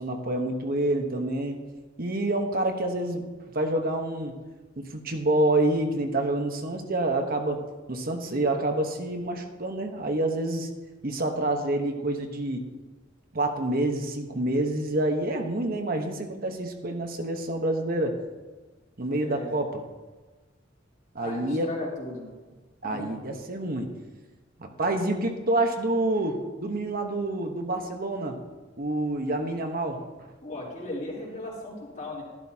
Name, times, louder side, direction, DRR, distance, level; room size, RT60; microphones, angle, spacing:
voice 1, 0.0-1.6 2.0-3.2 3.5-4.3 4.8-7.6 7.9-10.7 11.0-12.6 13.3-18.2 19.0-19.8 21.1-21.7 22.8-23.9 24.6-28.4 28.8-30.0, right 1 dB, 50° right, 4 dB, 1.1 m, -27 dB
voice 2, 19.2-19.5 21.2-22.3 22.8-23.1 30.4-32.2, left 1 dB, 45° left, -4 dB, 3.5 m, -36 dB
13.0 x 12.0 x 2.8 m, 1.3 s
head